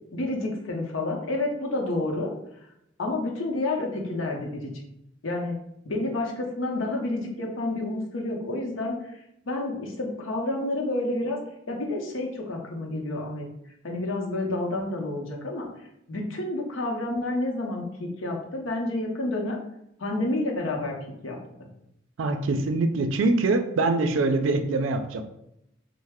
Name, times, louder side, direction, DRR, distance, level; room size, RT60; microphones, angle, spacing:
voice 1, 0.1-2.3 3.0-4.7 5.2-5.6 5.8-9.0 9.5-11.4 11.7-13.5 13.8-15.7 16.1-19.6 20.0-20.9 21.2-21.4, left 2 dB, 90° left, 1 dB, 0.7 m, -29 dB
voice 2, 22.2-25.2, right 3 dB, 75° right, 8 dB, 0.4 m, -24 dB
3.1 x 2.1 x 3.4 m, 0.79 s
head